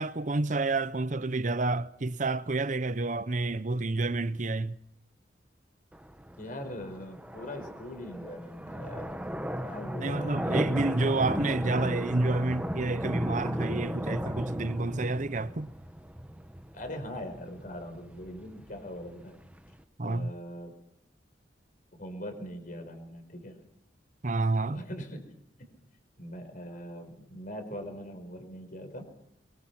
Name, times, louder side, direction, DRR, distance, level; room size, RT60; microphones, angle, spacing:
voice 1, 0.0-4.8 10.0-15.7 20.0-20.3 24.2-24.8, right 2 dB, 40° right, 0.8 m, -29 dB
sound 1, 5.9-19.8, equal, 5° right, 1.0 m, -35 dB
voice 2, 6.4-9.1 9.6-11.1 16.7-19.4 20.0-20.7 21.9-23.6 24.7-25.2 26.2-29.1, equal, 45° left, 4.9 m, -41 dB
23.5 x 22.0 x 5.9 m
head